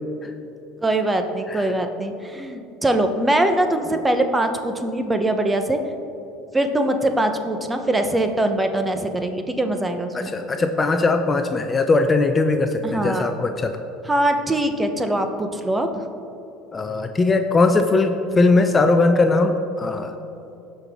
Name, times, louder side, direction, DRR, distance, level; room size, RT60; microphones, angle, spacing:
voice 1, 0.8-5.8 6.5-10.3 12.8-13.3 14.0-16.1, right 1 dB, 15° right, 7 dB, 0.9 m, -22 dB
voice 2, 10.1-13.8 16.7-20.1, left 3 dB, 25° left, 6 dB, 0.6 m, -19 dB
16.5 x 5.5 x 3.6 m, 2.8 s
supercardioid pair, 95°, 0 cm